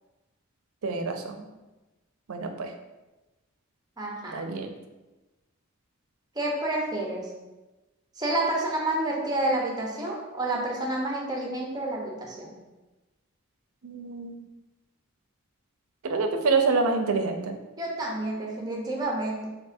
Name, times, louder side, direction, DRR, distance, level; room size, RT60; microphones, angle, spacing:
voice 1, 0.8-1.4 2.3-2.7 4.3-4.7 13.8-14.4 16.0-17.6, right 4 dB, 80° right, 6 dB, 0.5 m, -27 dB
voice 2, 4.0-4.3 6.4-7.2 8.2-12.5 17.8-19.5, right 2 dB, 20° right, -2 dB, 0.9 m, -29 dB
4.5 x 3.8 x 2.7 m, 1.1 s
head